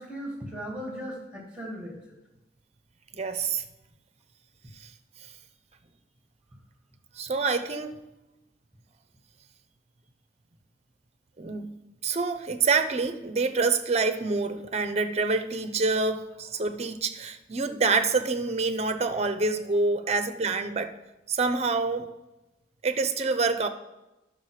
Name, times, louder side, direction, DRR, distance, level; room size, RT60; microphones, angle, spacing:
voice 1, 0.0-2.1, equal, 5° right, 2.3 m, -37 dB
voice 2, 3.1-3.6 4.8-4.9 7.2-8.0 11.4-11.8 12.0-20.9 21.3-22.1 22.8-23.7, right 4 dB, 40° right, 0.6 m, -27 dB
11.0 x 6.4 x 4.9 m
head